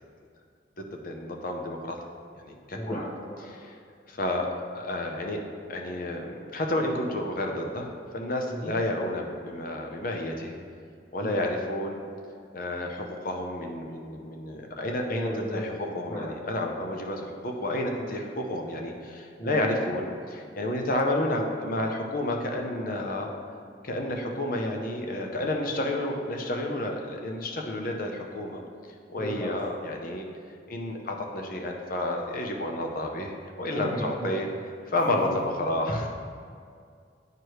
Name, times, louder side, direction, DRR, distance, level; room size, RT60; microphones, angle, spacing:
voice 1, 0.8-2.0 2.4-3.0 3.5-3.8 4.1-5.4 5.7-10.5 11.1-12.0 12.5-23.3 23.8-28.6 29.1-30.3 30.7-34.5 34.9-36.1, left 1 dB, 50° left, 2 dB, 0.7 m, -30 dB
voice 2, 2.7-3.4 8.5-8.7 11.2-11.5 15.1-16.3 19.4-19.6 29.2-29.5 33.7-34.4 35.1-35.3, equal, 25° left, -8 dB, 0.9 m, -34 dB
9.4 x 4.7 x 3.1 m, 2.2 s
head